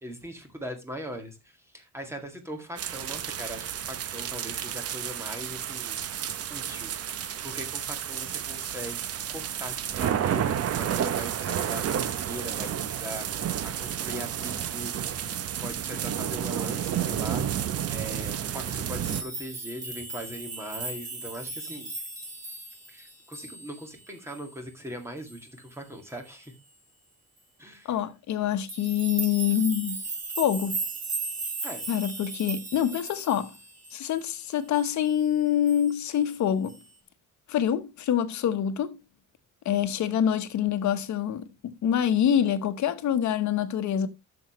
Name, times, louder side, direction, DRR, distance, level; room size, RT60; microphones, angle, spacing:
voice 1, 0.0-6.0 6.5-15.3 15.6-21.9 22.9-26.5 27.6-27.9 31.6-31.8, equal, 10° right, 2.0 m, -40 dB
sound 1, 2.8-19.2, right 9 dB, 50° right, 0.7 m, -31 dB
sound 2, 19.0-24.0 24.3-24.6 25.2-25.5 28.7-34.3 34.7-35.2 35.7-36.0 36.6-36.8, right 3 dB, 25° right, 2.4 m, -37 dB
voice 2, 27.8-30.0 30.4-30.8 31.9-33.5 33.9-36.8 37.5-39.0 39.6-44.1, left 9 dB, 60° left, 1.1 m, -26 dB
12.0 x 7.1 x 3.1 m
cardioid pair, 175°, 32 cm